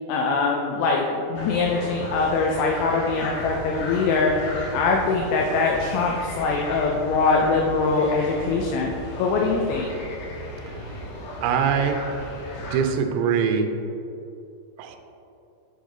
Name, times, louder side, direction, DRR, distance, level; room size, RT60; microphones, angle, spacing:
voice 1, 0.1-4.3 4.7-8.9 9.2-9.9, left 4 dB, 90° left, -1 dB, 2.8 m, -23 dB
sound 1, 1.3-12.8, equal, 70° left, 3.0 m, -35 dB
voice 2, 11.4-12.0 12.7-13.7 14.8-15.0, right 7 dB, 80° right, 6 dB, 2.4 m, -22 dB
7.2 x 5.1 x 3.8 m, 2.7 s
omnidirectional pair, 4.9 m